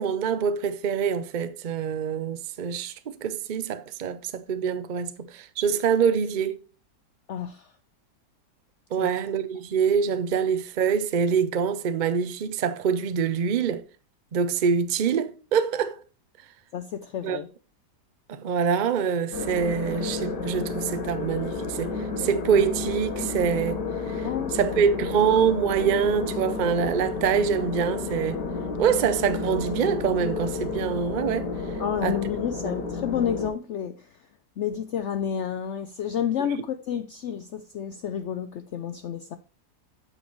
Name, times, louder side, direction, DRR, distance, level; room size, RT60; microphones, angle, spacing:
voice 1, 0.0-6.6 8.9-13.8 14.3-16.0 17.2-17.4 18.3-24.3 24.5-28.4 28.8-31.5 32.0-32.2 32.6-32.8, right 7 dB, 85° right, 0.4 m, -25 dB
voice 2, 7.3-7.7 9.0-9.1 16.7-17.5 24.2-24.8 31.8-34.2 34.6-39.4, left 8 dB, 70° left, 0.6 m, -30 dB
sound 1, 19.3-33.5, left 3 dB, 90° left, 2.0 m, -31 dB
8.4 x 7.2 x 3.0 m
omnidirectional pair, 1.8 m